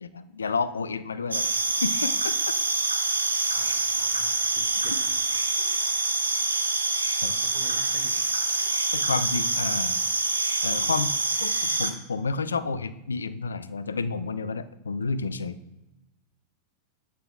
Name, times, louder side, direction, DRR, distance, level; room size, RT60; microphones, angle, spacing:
voice 1, 0.0-2.4 4.9-5.0 7.2-7.4 8.9-10.0 10.6-11.1 11.4-15.6, left 4 dB, 75° left, 14 dB, 0.4 m, -30 dB
sound 1, 1.3-11.9, right 3 dB, 80° right, 0.6 m, -26 dB
voice 2, 3.5-4.3 4.6-5.7 6.0-6.1 7.4-8.3, right 6 dB, 50° right, 6 dB, 1.0 m, -46 dB
8.6 x 4.0 x 3.7 m, 0.95 s
figure-of-eight pair, 90°, 0 cm